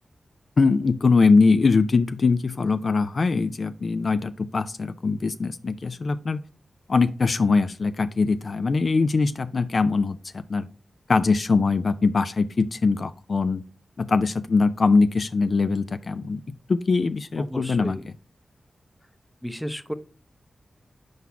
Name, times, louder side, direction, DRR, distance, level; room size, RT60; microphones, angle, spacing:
voice 1, 0.6-6.4 6.9-10.2 10.5-10.7 11.1-13.6 14.0-16.4 16.7-18.0, left 4 dB, 60° left, 11 dB, 0.4 m, -22 dB
voice 2, 17.4-18.1 19.4-19.9, equal, 5° left, 11 dB, 0.7 m, -33 dB
4.8 x 4.0 x 5.7 m, 0.38 s
cardioid pair, 50°, 0 cm